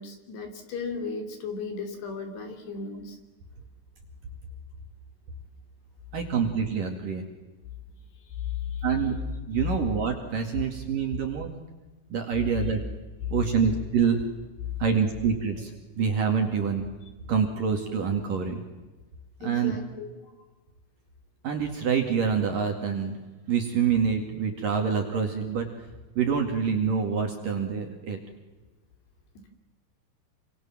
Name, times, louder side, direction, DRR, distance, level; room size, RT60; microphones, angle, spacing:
voice 1, 0.0-3.2 8.2-8.9 10.9-11.0 11.2-11.3 12.5-12.7 19.4-20.1, left 5 dB, 55° left, 5 dB, 4.9 m, -35 dB
voice 2, 6.1-7.2 8.8-9.2 9.5-11.5 12.1-12.8 13.3-14.2 14.8-16.8 17.3-18.6 19.4-19.8 21.4-23.2 23.5-25.7 26.1-28.2, right 6 dB, 50° right, 4 dB, 3.3 m, -26 dB
28.0 x 27.0 x 7.5 m, 1.2 s
omnidirectional pair, 5.9 m